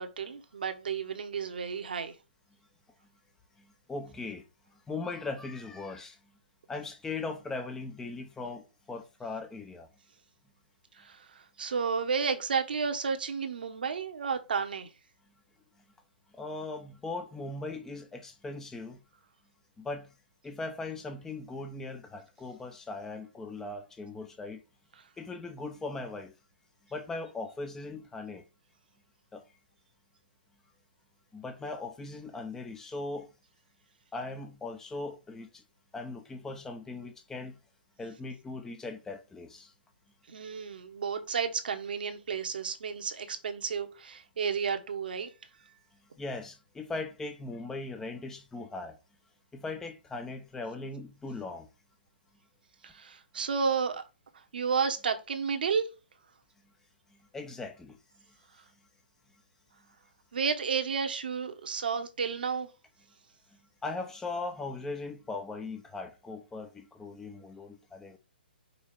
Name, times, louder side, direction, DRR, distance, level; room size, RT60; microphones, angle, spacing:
voice 1, 0.0-2.1 11.0-14.9 40.3-45.3 52.8-54.0 54.5-55.9 60.3-62.7, right 6 dB, 65° right, 1.3 m, -32 dB
voice 2, 3.6-4.4 4.9-6.2 6.7-9.9 16.3-19.0 19.8-20.1 20.4-24.6 25.2-26.3 26.9-28.4 29.3-29.4 31.3-33.3 34.1-35.6 35.9-37.6 38.0-39.7 46.2-49.0 49.5-51.7 57.3-58.0 63.8-68.2, left 3 dB, 10° left, 0.7 m, -39 dB
5.6 x 4.1 x 4.8 m
figure-of-eight pair, 125°, 5 cm